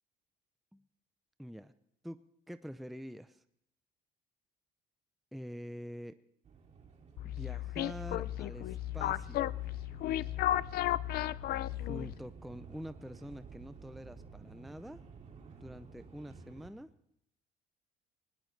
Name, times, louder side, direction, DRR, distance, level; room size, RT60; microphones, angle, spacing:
voice 1, 1.4-1.7 2.0-2.2 2.5-3.4 5.3-6.2 7.2-9.5 11.7-15.0 15.6-16.9, equal, ahead, 11 dB, 0.5 m, -46 dB
sound 1, 6.4-16.7, right 5 dB, 45° right, 2.3 m, -53 dB
sound 2, 7.2-12.3, left 14 dB, 65° left, 0.5 m, -34 dB
19.5 x 19.5 x 3.3 m, 0.77 s
cardioid pair, 110°, 17 cm